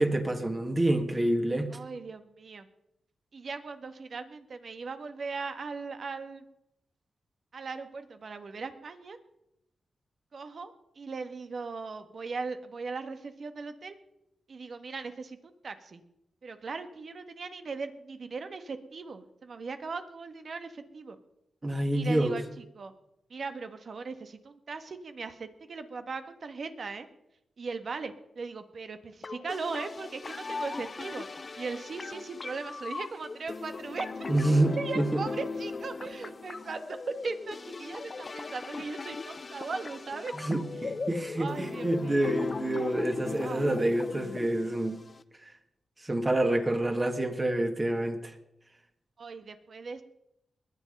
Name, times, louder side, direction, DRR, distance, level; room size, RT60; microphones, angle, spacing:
voice 1, 0.0-1.7 21.6-22.4 34.3-35.2 40.3-45.0 46.0-48.3, right 1 dB, 30° right, 4 dB, 2.2 m, -27 dB
voice 2, 1.7-2.7 3.3-6.4 7.5-9.2 10.3-14.0 14.5-16.0 16.4-21.2 21.9-22.9 23.3-27.1 27.6-31.3 31.6-34.3 34.8-40.3 41.4-42.3 43.4-43.7 49.2-50.0, right 4 dB, 65° right, 8 dB, 1.6 m, -38 dB
sound 1, 29.2-45.2, left 4 dB, 45° left, 0.7 m, -38 dB
21.0 x 7.9 x 5.4 m, 0.85 s
cardioid pair, 50°, 0 cm